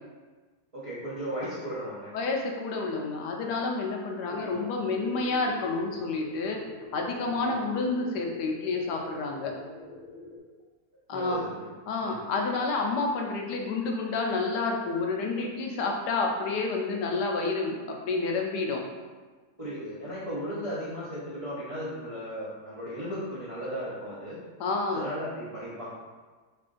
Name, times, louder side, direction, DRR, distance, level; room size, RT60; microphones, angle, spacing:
voice 1, 0.7-2.1 4.3-4.6 7.3-7.5 11.1-11.7 12.0-12.3 19.6-24.4 24.9-25.9, equal, 35° right, -10 dB, 0.5 m, -36 dB
voice 2, 2.1-6.6 6.9-9.5 11.1-11.4 11.9-18.8 24.6-25.0, left 3 dB, 85° left, 1 dB, 1.2 m, -29 dB
sound 1, 4.8-10.4, left 2 dB, 45° left, 1.8 m, -46 dB
3.3 x 2.5 x 3.7 m, 1.4 s
omnidirectional pair, 1.7 m